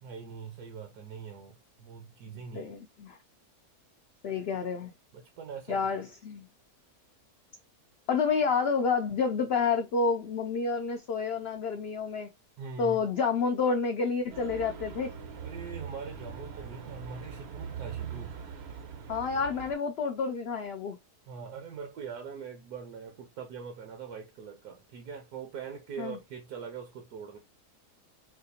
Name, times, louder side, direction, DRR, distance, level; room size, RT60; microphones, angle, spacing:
voice 1, 0.0-2.7 5.1-5.8 12.6-13.0 15.3-18.4 21.3-27.4, right 6 dB, 80° right, 1.3 m, -42 dB
voice 2, 2.5-3.2 4.2-4.9 5.7-6.5 8.1-12.3 12.8-15.1 19.1-21.0 26.0-26.2, left 5 dB, 80° left, 0.5 m, -29 dB
sound 1, 14.3-19.7, right 7 dB, 55° right, 0.7 m, -42 dB
4.2 x 2.4 x 2.6 m
omnidirectional pair, 1.6 m